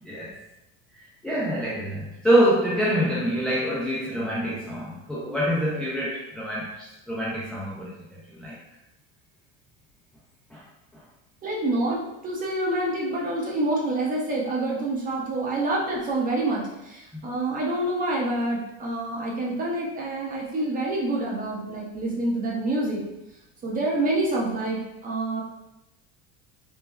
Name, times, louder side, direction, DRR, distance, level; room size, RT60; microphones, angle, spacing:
voice 1, 0.0-0.4 0.9-8.6 10.5-10.6 17.1-17.3, equal, 5° left, -7 dB, 0.3 m, -26 dB
voice 2, 11.4-23.0 23.6-25.4, right 2 dB, 30° right, -3 dB, 0.7 m, -27 dB
3.2 x 2.2 x 2.2 m, 0.90 s
cardioid pair, 130°, 30 cm